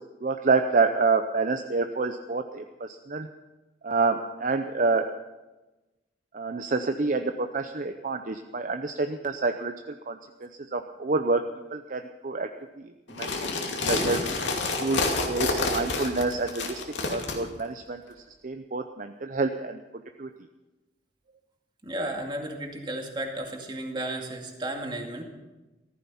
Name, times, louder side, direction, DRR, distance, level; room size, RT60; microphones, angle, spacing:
voice 1, 0.2-3.3 3.8-5.1 6.3-9.7 10.1-11.4 11.7-12.5 13.1-13.3 13.7-14.2 14.8-16.8 17.1-18.0 18.4-19.8 20.2-20.3, right 3 dB, 45° right, 7 dB, 0.6 m, -27 dB
sound 1, 13.1-17.4, left 3 dB, 80° left, 2.5 m, -28 dB
voice 2, 21.8-25.2, right 1 dB, 25° right, 2 dB, 2.2 m, -33 dB
15.0 x 14.0 x 5.7 m, 1.1 s
head